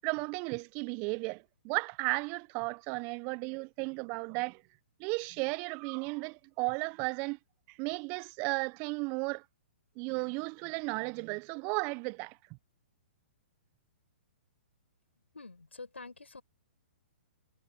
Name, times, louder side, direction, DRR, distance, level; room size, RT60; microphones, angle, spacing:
voice 1, 0.0-4.6 5.0-7.4 7.7-9.4 10.0-12.4, right 30 dB, 30° right, 0.5 m, -34 dB
voice 2, 15.1-16.4, left 3 dB, 85° left, 7.7 m, -48 dB
figure-of-eight pair, 120°, 6 cm